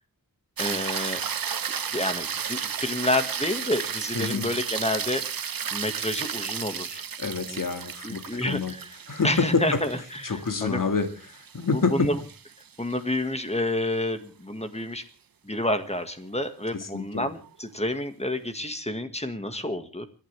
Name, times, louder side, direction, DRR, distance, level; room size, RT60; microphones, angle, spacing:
voice 1, 0.6-1.2 1.9-7.0 7.5-7.6 8.0-8.9 9.2-10.8 11.7-12.2 12.8-15.0 15.4-20.1, left 1 dB, 20° left, 9 dB, 1.9 m, -29 dB
sound 1, 0.6-13.0 17.4-17.5, right 7 dB, 75° right, 0.8 m, -33 dB
voice 2, 4.1-4.5 7.2-8.7 9.1-9.8 10.2-12.1 16.8-17.3, left 4 dB, 65° left, 7 dB, 2.1 m, -27 dB
29.5 x 11.5 x 3.4 m, 0.36 s
wide cardioid pair, 80°, 35 cm